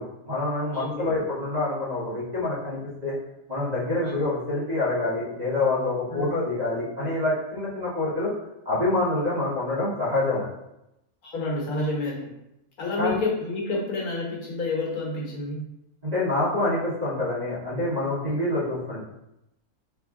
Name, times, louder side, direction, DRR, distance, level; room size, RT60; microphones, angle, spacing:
voice 1, 0.0-3.1 3.5-8.3 8.6-10.5 13.0-13.2 16.0-19.0, left 2 dB, 25° right, -9 dB, 1.6 m, -26 dB
voice 2, 0.7-1.1 4.0-4.2 6.1-6.4 11.2-12.3 12.8-15.6, left 2 dB, 75° left, -3 dB, 1.6 m, -29 dB
3.6 x 3.4 x 3.6 m, 0.87 s
omnidirectional pair, 1.6 m